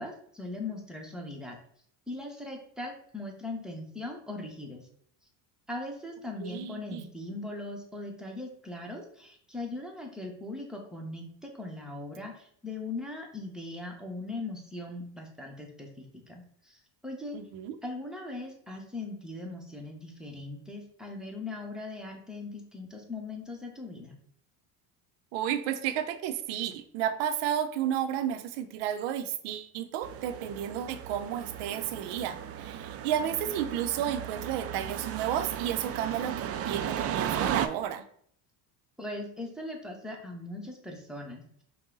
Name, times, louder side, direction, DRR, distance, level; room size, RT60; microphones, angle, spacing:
voice 1, 0.0-1.6 2.1-4.8 5.7-17.4 17.8-24.2 39.0-41.6, left 2 dB, ahead, 1 dB, 0.9 m, -40 dB
voice 2, 6.4-7.1 17.3-17.8 25.3-38.0, right 10 dB, 75° right, 9 dB, 0.7 m, -32 dB
sound 1, 30.0-37.7, right 9 dB, 35° right, 0.4 m, -35 dB
5.4 x 2.2 x 3.8 m, 0.63 s
supercardioid pair, 100°, 42 cm